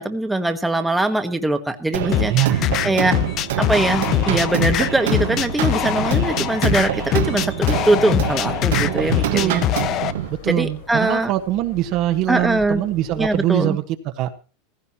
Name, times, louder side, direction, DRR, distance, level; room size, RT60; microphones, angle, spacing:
voice 1, 0.0-2.3 2.8-3.2 3.6-9.6 10.5-11.3 12.3-12.8 13.2-13.8, right 2 dB, 5° right, 6 dB, 1.4 m, -21 dB
sound 1, 1.9-10.3, right 12 dB, 80° right, 1.5 m, -25 dB
sound 2, 2.1-10.1, left 12 dB, 45° left, 0.7 m, -23 dB
voice 2, 2.3-3.2 9.3-9.7 10.3-14.3, right 14 dB, 50° right, 6 dB, 1.3 m, -23 dB
sound 3, 3.1-13.4, left 5 dB, 75° left, 6.9 m, -42 dB
15.5 x 15.0 x 2.9 m, 0.35 s
supercardioid pair, 125°, 0 cm